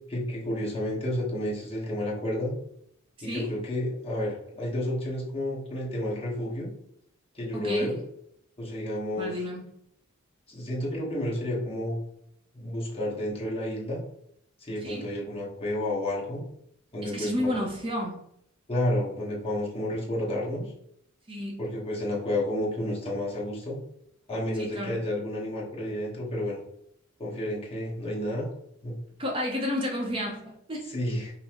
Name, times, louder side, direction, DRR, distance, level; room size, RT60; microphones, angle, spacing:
voice 1, 0.1-2.5 3.2-6.7 7.3-8.0 8.6-9.4 10.5-12.0 12.5-14.0 14.6-16.4 16.9-17.6 18.7-20.7 21.6-23.8 24.3-26.6 27.2-28.4 28.8-28.9 30.9-31.3, left 1 dB, 30° left, -5 dB, 1.1 m, -31 dB
voice 2, 3.2-3.5 7.5-8.0 9.2-9.6 14.8-15.1 17.0-18.2 21.3-21.6 24.6-25.0 29.2-30.9, left 1 dB, 25° right, -1 dB, 0.6 m, -31 dB
5.4 x 2.0 x 2.9 m, 0.73 s
head